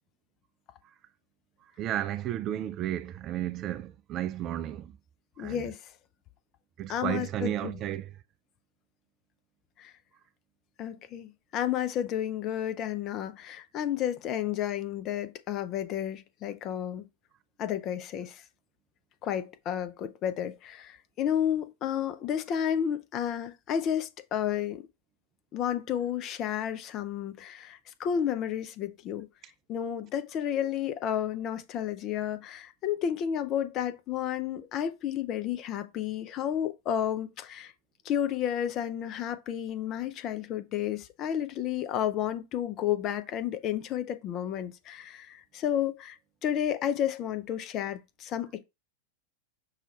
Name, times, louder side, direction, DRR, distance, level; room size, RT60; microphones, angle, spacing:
voice 1, 1.8-4.9 5.4-5.7 6.8-8.2, right 12 dB, 35° right, 0.3 m, -33 dB
voice 2, 5.4-5.8 6.9-7.8 9.8-9.9 10.8-17.0 17.6-18.4 19.2-24.9 25.5-29.3 29.7-37.7 38.0-48.6, left 10 dB, 35° left, 0.5 m, -31 dB
5.6 x 2.3 x 4.0 m
figure-of-eight pair, 90°, 0 cm